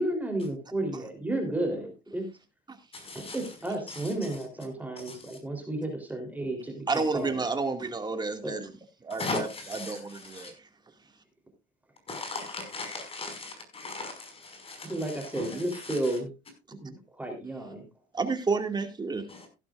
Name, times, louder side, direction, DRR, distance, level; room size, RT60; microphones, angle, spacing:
voice 1, 0.0-2.2 3.3-7.5 8.4-8.6 14.8-16.3 16.7-17.9, right 1 dB, 10° right, 3.5 m, -32 dB
voice 2, 2.9-4.5 5.0-5.4 9.1-10.5 12.1-16.2 19.3-19.5, left 3 dB, 35° left, 5.5 m, -38 dB
voice 3, 6.9-8.7 9.0-9.5 9.9-10.5 18.1-19.2, right 4 dB, 25° right, 2.1 m, -30 dB
15.5 x 12.0 x 2.5 m
cardioid pair, 110°, 17 cm